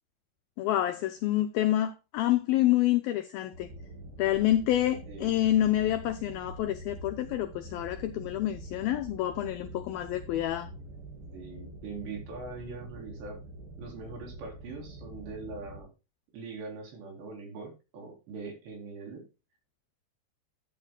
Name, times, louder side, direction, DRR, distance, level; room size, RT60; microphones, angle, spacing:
voice 1, 0.6-3.7 4.2-10.7, left 13 dB, 85° left, 2.1 m, -28 dB
sound 1, 3.5-15.8, right 1 dB, 85° right, 7.4 m, -45 dB
voice 2, 11.3-13.4 13.8-15.9 16.3-19.2, right 4 dB, 70° right, 5.7 m, -42 dB
12.5 x 9.9 x 2.2 m
omnidirectional pair, 5.1 m